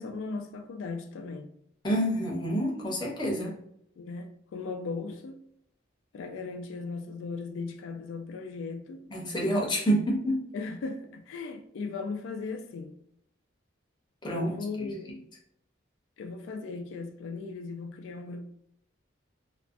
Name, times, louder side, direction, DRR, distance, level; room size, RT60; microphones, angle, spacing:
voice 1, 0.0-1.5 3.4-3.6 4.0-5.4 6.1-9.0 10.5-13.0 14.3-15.1 16.2-18.4, left 4 dB, 85° left, 0.3 m, -37 dB
voice 2, 1.8-3.5 9.1-10.4 14.2-14.5 14.8-14.9, equal, 25° left, 0.6 m, -28 dB
2.4 x 2.1 x 2.4 m
head